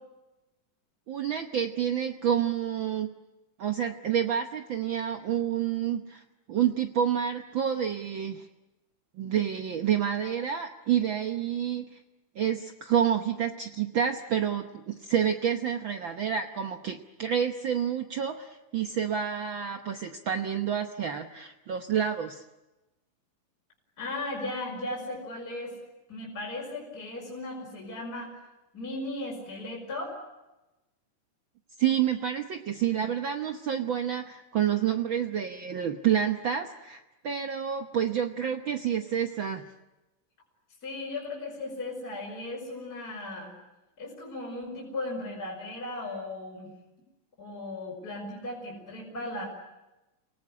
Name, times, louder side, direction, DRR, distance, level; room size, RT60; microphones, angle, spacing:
voice 1, 1.1-3.1 3.6-6.2 6.5-8.5 9.2-12.0 12.3-22.4 31.8-39.6, right 9 dB, 75° right, 5 dB, 1.1 m, -28 dB
voice 2, 24.0-25.8 26.1-28.3 28.7-30.2 40.8-43.5 44.0-46.7 47.4-49.5, left 2 dB, 25° left, -2 dB, 5.6 m, -36 dB
29.0 x 19.0 x 9.7 m, 1.0 s
omnidirectional pair, 3.7 m